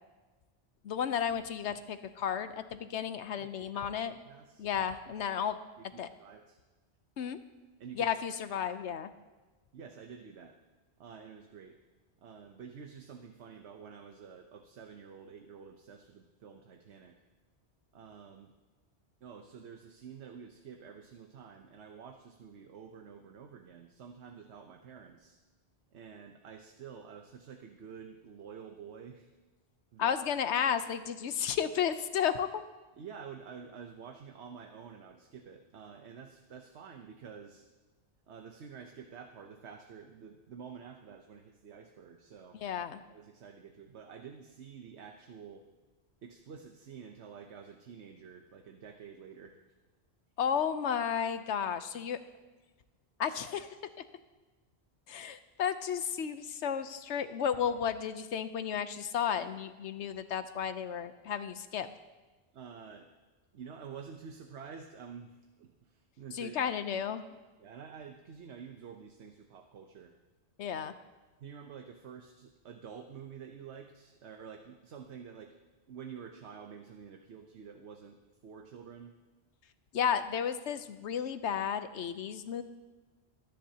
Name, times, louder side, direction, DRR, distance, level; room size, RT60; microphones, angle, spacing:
voice 1, 0.8-4.1 4.6-5.6 6.0-6.1 7.2-7.4 7.9-9.1 30.0-32.6 42.5-43.0 50.4-52.2 53.2-53.8 55.1-61.9 66.3-67.3 70.6-70.9 79.9-82.6, left 8 dB, 90° left, 11 dB, 1.0 m, -33 dB
voice 2, 3.4-4.7 5.8-6.6 7.8-8.1 9.7-10.6 11.0-11.8 12.2-17.2 17.9-18.5 19.2-25.4 25.9-29.3 29.9-30.1 32.9-37.7 38.3-42.6 43.1-45.6 46.2-49.6 62.5-63.1 63.5-66.6 67.6-70.1 71.4-75.5 75.9-79.2, right 6 dB, 75° right, 4 dB, 1.1 m, -49 dB
23.5 x 10.5 x 2.8 m, 1.2 s
omnidirectional pair, 1.1 m